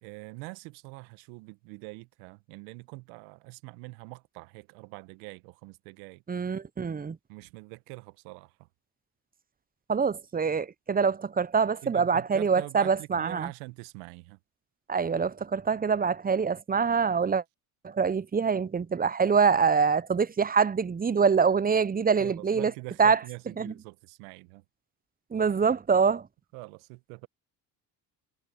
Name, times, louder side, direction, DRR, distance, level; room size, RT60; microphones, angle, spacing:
voice 1, 0.0-6.2 7.3-8.7 11.8-14.4 22.2-24.6 26.5-27.3, right 25 dB, 80° right, 1.4 m, -44 dB
voice 2, 6.3-7.2 9.9-13.5 14.9-17.4 17.8-22.7 23.0-23.2 23.6-23.7 25.3-26.3, right 5 dB, 20° right, 0.7 m, -25 dB
hypercardioid pair, 60°, 47 cm